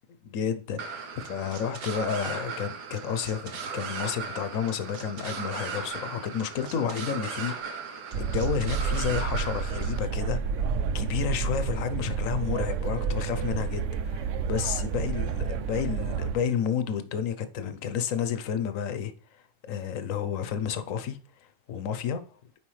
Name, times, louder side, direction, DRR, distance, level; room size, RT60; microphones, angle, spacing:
voice 1, 0.2-22.2, left 8 dB, 60° left, 1.0 m, -31 dB
sound 1, 0.8-10.0, right 5 dB, 85° right, 1.6 m, -37 dB
sound 2, 8.1-16.4, right 6 dB, 70° right, 0.8 m, -30 dB
8.8 x 4.8 x 3.2 m
omnidirectional pair, 1.7 m